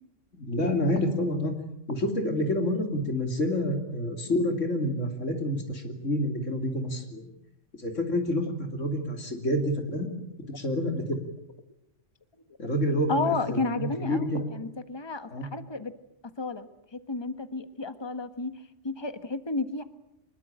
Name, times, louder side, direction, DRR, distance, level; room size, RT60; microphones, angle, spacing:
voice 1, 0.3-1.5 1.9-7.3 7.8-10.1 10.5-11.2 12.6-14.5 15.3-15.5, left 1 dB, 90° left, 4 dB, 3.2 m, -28 dB
voice 2, 13.1-15.9 16.4-19.8, left 3 dB, 20° left, 10 dB, 1.5 m, -32 dB
25.0 x 21.5 x 9.0 m, 0.81 s
omnidirectional pair, 1.2 m